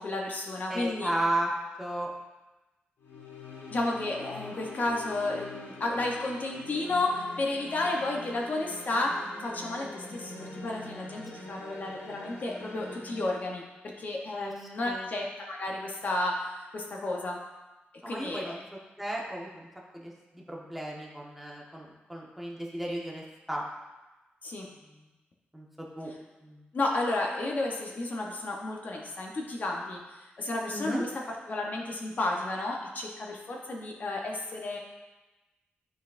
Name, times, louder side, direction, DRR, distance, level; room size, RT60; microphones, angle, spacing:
voice 1, 0.0-1.1 3.7-13.6 14.0-17.4 18.1-18.6 24.4-24.7 26.7-30.0 30.4-34.8, left 2 dB, 45° left, 0 dB, 0.9 m, -32 dB
voice 2, 0.7-1.5 1.8-2.1 14.3-14.5 14.8-15.1 18.0-18.6 19.0-19.7 19.9-23.6 25.5-26.1 26.4-26.6 30.7-31.0, right 1 dB, 5° right, -3 dB, 1.2 m, -34 dB
sound 1, 3.0-13.3, left 2 dB, 80° left, 1.2 m, -44 dB
12.0 x 4.1 x 2.5 m, 1.1 s
wide cardioid pair, 120°, 4 cm